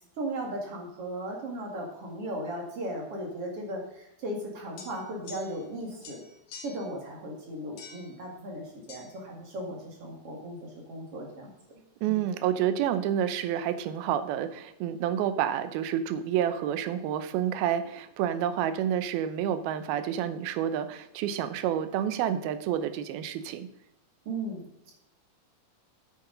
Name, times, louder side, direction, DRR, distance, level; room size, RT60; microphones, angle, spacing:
voice 1, 0.2-6.2 6.6-11.8 12.1-12.3 24.3-24.9, right 1 dB, 45° right, 0 dB, 2.7 m, -37 dB
sound 1, 4.8-5.7 6.0-6.9 7.8-8.2 8.9-9.1, left 5 dB, 55° left, 2.6 m, -47 dB
voice 2, 12.0-23.7, right 10 dB, 80° right, 11 dB, 2.7 m, -29 dB
9.9 x 8.7 x 3.9 m, 0.87 s
omnidirectional pair, 4.4 m